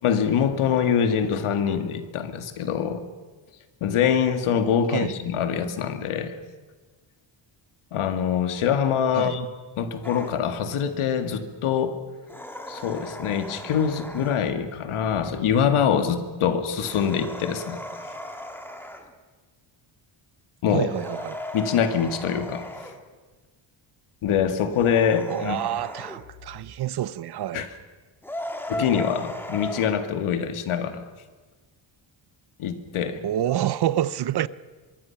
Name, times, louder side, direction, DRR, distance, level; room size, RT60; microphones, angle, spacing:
voice 1, 0.0-3.0 3.8-6.3 7.9-9.5 9.8-12.0 12.7-17.8 20.6-20.9 21.5-22.7 24.2-25.6 27.5-27.7 28.7-31.0 32.6-33.2, left 8 dB, 85° left, 2.1 m, -24 dB
sound 1, 10.0-10.4 12.3-14.5 16.7-19.1 20.9-23.0 24.7-26.2 28.2-29.9, left 1 dB, 5° left, 1.7 m, -36 dB
voice 2, 20.7-21.4 25.3-27.7 33.2-34.5, right 12 dB, 55° right, 0.6 m, -27 dB
24.0 x 23.0 x 5.9 m
wide cardioid pair, 175°, 49 cm